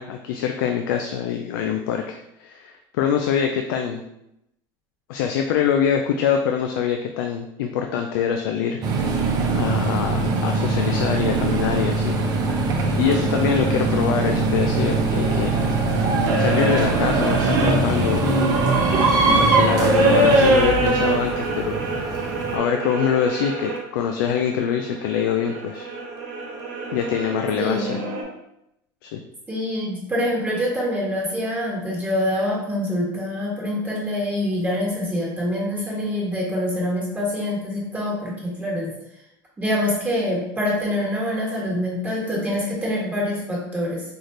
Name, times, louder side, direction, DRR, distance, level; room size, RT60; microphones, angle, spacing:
voice 1, 0.0-4.0 5.1-9.2 9.5-12.2 13.0-15.6 16.4-18.6 19.2-22.1 22.5-25.9 26.9-28.0 29.0-29.2, left 8 dB, 80° left, 4 dB, 0.4 m, -24 dB
sound 1, 8.8-22.6, right 3 dB, 35° right, 0.7 m, -23 dB
sound 2, 13.0-23.8 24.5-28.2, right 2 dB, 80° right, 1.1 m, -24 dB
voice 2, 27.6-28.0 29.5-38.9 39.6-44.0, left 1 dB, 15° right, -5 dB, 1.5 m, -25 dB
4.3 x 2.4 x 3.2 m, 0.82 s
supercardioid pair, 120°, 11 cm